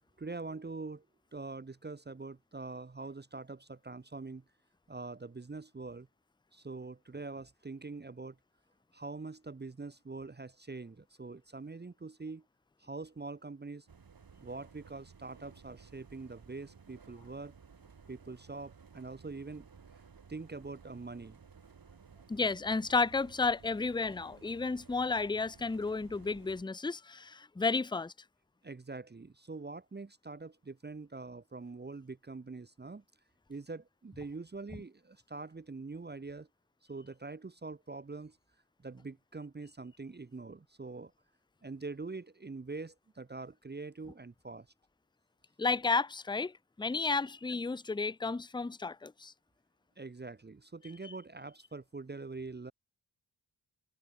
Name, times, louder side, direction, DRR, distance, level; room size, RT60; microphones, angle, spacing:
voice 1, 0.2-1.0 1.3-4.4 4.9-6.1 6.5-8.4 8.9-12.4 12.8-13.9 14.4-17.5 18.1-19.7 20.3-21.4 28.6-33.0 33.5-36.5 36.9-38.4 38.8-41.1 41.6-44.7 50.0-52.7, right 3 dB, 20° right, 0.9 m, -44 dB
sound 1, 13.9-26.6, right 6 dB, 45° right, 3.5 m, -57 dB
voice 2, 22.3-28.1 45.6-49.3, left 4 dB, 10° left, 0.6 m, -32 dB
wide cardioid pair, 140°, 47 cm